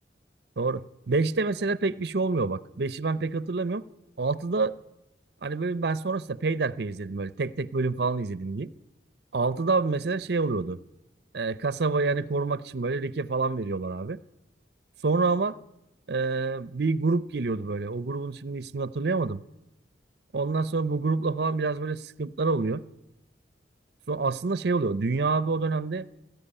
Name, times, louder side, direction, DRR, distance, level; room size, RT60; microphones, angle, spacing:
voice 1, 1.1-3.8 4.2-4.7 5.4-8.7 9.3-10.8 11.3-14.2 15.0-15.6 16.1-19.4 20.3-22.8 24.1-26.1, right 3 dB, 60° right, 0.6 m, -27 dB
19.0 x 13.5 x 10.0 m
head